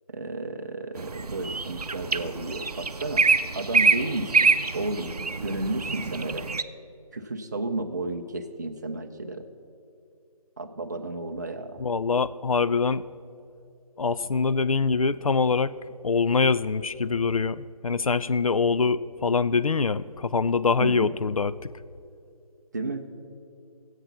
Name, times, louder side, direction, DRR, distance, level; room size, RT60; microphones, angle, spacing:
voice 1, 0.1-3.2 3.5-6.5 7.1-9.5 10.6-11.8 20.8-21.1 22.7-23.1, right 2 dB, 30° right, 5 dB, 0.5 m, -32 dB
sound 1, 1.0-6.6, right 4 dB, 75° right, 0.6 m, -25 dB
voice 2, 11.8-13.0 14.0-15.7 16.0-21.7, left 4 dB, 65° left, 15 dB, 0.4 m, -24 dB
14.5 x 8.2 x 5.8 m, 2.5 s
figure-of-eight pair, 155°, 20 cm